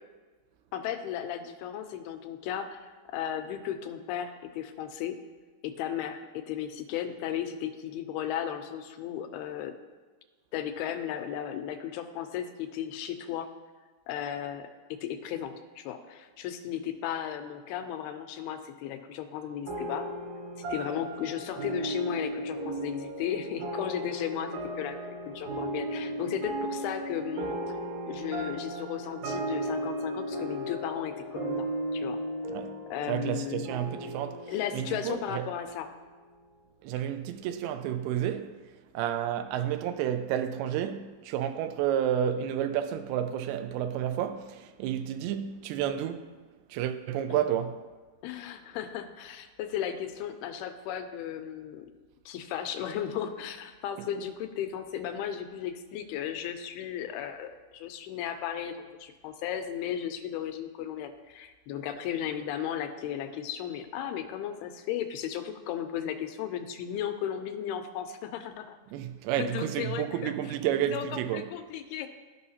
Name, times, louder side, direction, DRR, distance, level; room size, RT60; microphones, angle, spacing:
voice 1, 0.7-5.2 5.6-9.7 10.5-13.5 14.1-14.7 15.0-20.1 20.6-27.8 28.0-32.2 32.9-33.7 34.5-35.9 47.3-47.4 48.2-51.9 52.3-68.8 69.4-70.5 70.9-72.1, left 9 dB, 85° left, 2.5 m, -35 dB
sound 1, 19.7-36.5, right 1 dB, 70° right, 2.8 m, -36 dB
voice 2, 33.1-34.4 34.7-35.5 36.8-38.5 38.9-46.3 46.7-47.8 68.9-71.5, right 10 dB, 85° right, 2.6 m, -31 dB
14.5 x 5.6 x 2.8 m
omnidirectional pair, 4.5 m